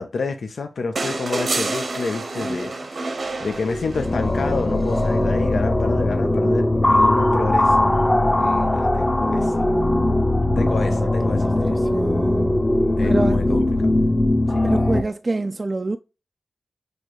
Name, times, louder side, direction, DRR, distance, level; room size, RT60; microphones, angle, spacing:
voice 1, 0.0-3.0 3.4-7.9 8.4-9.8 10.6-11.8 13.0-13.6 14.5-14.6, left 4 dB, 85° left, 0.6 m, -29 dB
sound 1, 1.0-4.3 5.8-5.9, right 3 dB, 70° right, 0.9 m, -28 dB
sound 2, 3.4-15.0, left 1 dB, 30° left, 0.8 m, -20 dB
voice 2, 10.9-12.6 13.0-13.6 14.6-16.0, right 2 dB, 45° right, 0.3 m, -28 dB
6.5 x 2.7 x 3.0 m
cardioid pair, 50°, 0 cm